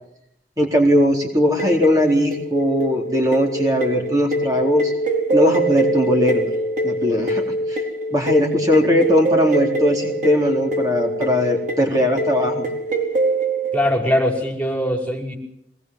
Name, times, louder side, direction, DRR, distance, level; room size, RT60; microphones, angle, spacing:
voice 1, 0.6-4.9 5.3-6.5 6.8-7.8 8.1-12.7, equal, 20° right, 0 dB, 4.0 m, -19 dB
sound 1, 1.6-13.9, right 2 dB, 45° right, 4.0 m, -24 dB
voice 2, 13.7-15.4, left 1 dB, 5° left, 1 dB, 5.1 m, -21 dB
24.0 x 20.5 x 7.8 m, 0.75 s
head